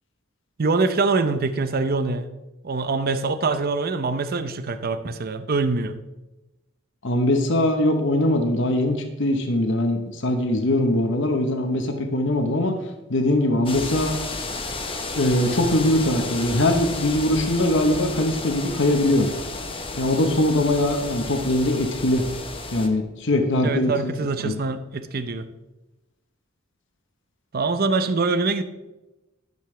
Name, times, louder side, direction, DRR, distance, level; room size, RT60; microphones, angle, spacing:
voice 1, 0.6-2.3 2.6-6.0 23.6-25.5 27.5-28.6, right 3 dB, 50° right, 11 dB, 0.6 m, -24 dB
voice 2, 7.0-12.7 13.1-14.2 15.2-19.3 20.0-22.2 22.7-23.9 24.4-24.5, left 1 dB, 65° left, 5 dB, 1.0 m, -21 dB
sound 1, 13.7-22.9, left 3 dB, 25° left, 1.0 m, -32 dB
12.0 x 6.8 x 3.3 m, 1.0 s
head